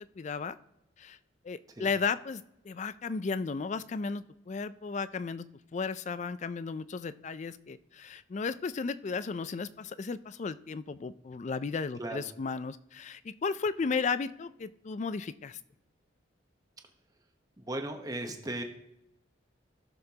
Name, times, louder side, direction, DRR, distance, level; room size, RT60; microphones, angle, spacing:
voice 1, 0.2-0.6 1.0-1.2 1.4-5.5 5.7-15.6, left 5 dB, 35° left, 15 dB, 0.3 m, -34 dB
voice 2, 12.0-12.3 17.6-18.6, right 1 dB, 20° right, 4 dB, 0.9 m, -37 dB
16.5 x 6.7 x 2.8 m, 0.85 s
head